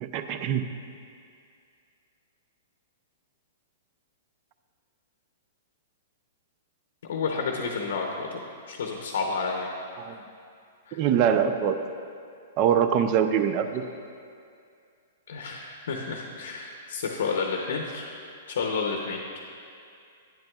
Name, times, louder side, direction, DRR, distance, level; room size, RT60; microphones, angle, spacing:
voice 1, 0.0-0.6 10.0-10.2 10.9-11.8 12.6-13.8, right 8 dB, 40° right, 9 dB, 0.4 m, -23 dB
voice 2, 7.1-9.7 10.9-11.0 15.3-18.2 18.5-19.2, left 4 dB, 75° left, 1 dB, 0.7 m, -30 dB
9.0 x 7.8 x 2.3 m, 2.4 s
hypercardioid pair, 125°, 0 cm